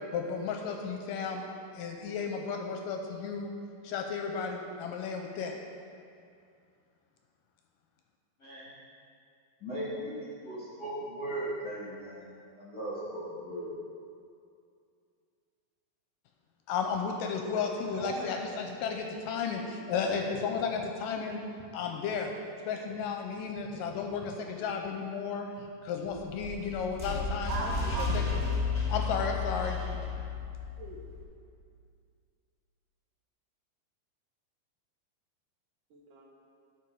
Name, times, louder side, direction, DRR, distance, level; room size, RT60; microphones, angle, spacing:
voice 1, 0.1-1.4 1.8-3.5 3.8-5.6 16.7-21.4 21.7-22.3 22.7-27.5 28.1-28.2 28.9-29.8, left 5 dB, 80° left, 3 dB, 2.1 m, -33 dB
voice 2, 8.4-8.7 9.6-12.2 12.6-13.7, right 1 dB, 40° left, -8 dB, 1.5 m, -37 dB
voice 3, 17.9-19.1 27.5-28.4 30.8-31.0 35.9-36.2, right 2 dB, 70° right, -2 dB, 2.3 m, -39 dB
sound 1, 26.1-31.2, left 4 dB, 15° left, 1.1 m, -33 dB
12.0 x 5.0 x 4.6 m, 2.4 s
omnidirectional pair, 4.1 m